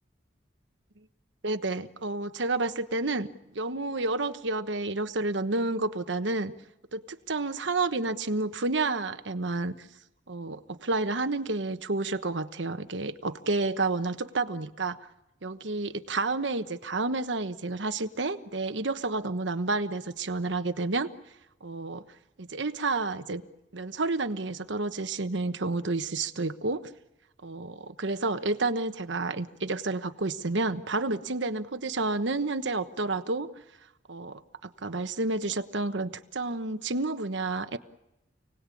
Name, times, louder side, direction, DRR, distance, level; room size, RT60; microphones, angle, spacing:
voice 1, 1.4-3.3 3.5-6.5 6.9-7.0 7.3-9.9 10.3-15.0 15.4-21.1 21.6-22.0 22.4-23.4 23.7-26.9 27.4-33.5 34.1-37.8, right 3 dB, 85° right, 9 dB, 1.2 m, -30 dB
29.0 x 19.0 x 8.5 m, 0.93 s
head